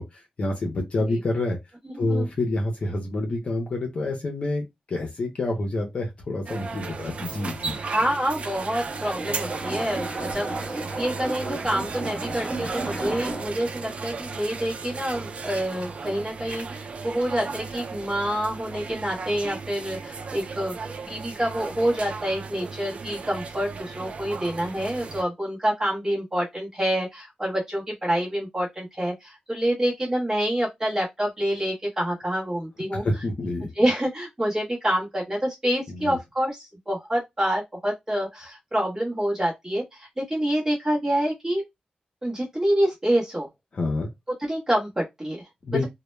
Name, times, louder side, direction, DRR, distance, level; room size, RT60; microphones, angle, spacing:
voice 1, 0.0-1.6 2.0-7.8 32.9-33.7 35.9-36.2 43.7-44.1 45.6-45.8, left 2 dB, 50° left, 0.6 m, -28 dB
voice 2, 1.8-2.3 7.9-20.8 21.0-33.0 33.8-41.6 42.2-43.5 44.5-45.4, right 1 dB, 20° right, 0.9 m, -27 dB
sound 1, 6.5-25.2, right 4 dB, 50° right, 0.3 m, -35 dB
sound 2, 8.9-13.6, right 2 dB, ahead, 1.1 m, -33 dB
2.1 x 2.0 x 3.1 m
wide cardioid pair, 135°, 3 cm